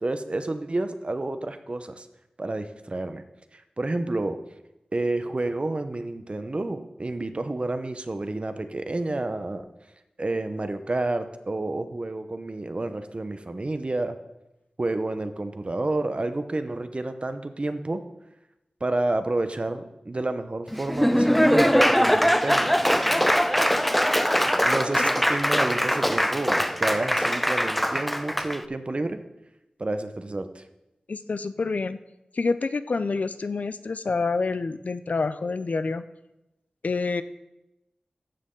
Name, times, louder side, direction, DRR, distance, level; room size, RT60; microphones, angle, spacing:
voice 1, 0.0-2.1 2.4-3.2 3.5-4.4 4.9-9.7 10.2-14.2 14.8-18.0 18.8-22.7 24.6-29.2 29.8-30.6, right 2 dB, 45° right, 9 dB, 0.9 m, -30 dB
Laughter / Applause, 20.7-28.6, equal, 5° left, 0.6 m, -22 dB
voice 2, 31.1-32.0 32.3-36.0 36.8-37.2, left 4 dB, 65° left, 12 dB, 0.5 m, -27 dB
14.5 x 6.4 x 3.8 m, 0.93 s
cardioid pair, 45°, 3 cm